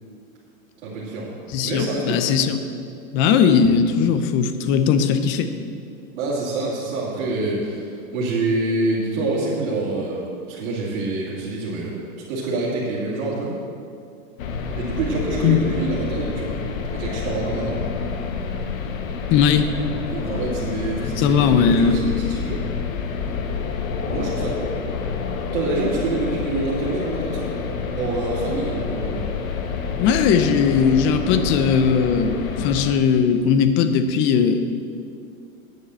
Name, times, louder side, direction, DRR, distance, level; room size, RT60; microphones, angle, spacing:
voice 1, 0.8-1.3 1.6-2.2 6.1-12.0 12.3-13.5 14.7-16.6 16.9-17.8 20.1-22.7 24.1-24.7 25.5-27.5 27.9-29.3, right 2 dB, 55° right, -9 dB, 3.0 m, -26 dB
voice 2, 1.5-2.6 3.1-5.5 15.4-15.6 19.3-19.7 21.2-22.0 30.0-34.7, left 6 dB, 30° left, 9 dB, 0.7 m, -18 dB
sound 1, 14.4-32.9, left 5 dB, 75° left, 1.3 m, -28 dB
9.6 x 7.2 x 7.7 m, 2.4 s
hypercardioid pair, 140°, 41 cm